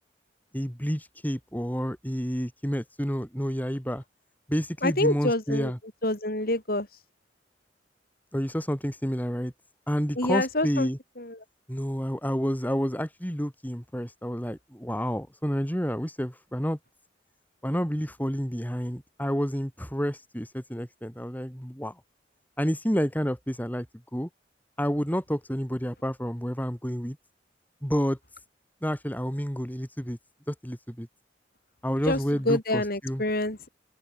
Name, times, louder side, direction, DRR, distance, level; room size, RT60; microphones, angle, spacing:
voice 1, 0.5-4.0 4.5-5.8 8.3-9.5 9.9-11.0 11.7-16.8 17.6-21.9 22.6-23.9 24.1-24.3 24.8-27.2 27.8-28.2 28.8-30.2 30.5-31.1 31.8-33.2, equal, 10° left, 7.5 m, -29 dB
voice 2, 4.8-5.7 6.0-7.0 10.2-10.9 11.2-11.4 32.0-33.7, left 1 dB, 50° left, 5.0 m, -27 dB
open air
head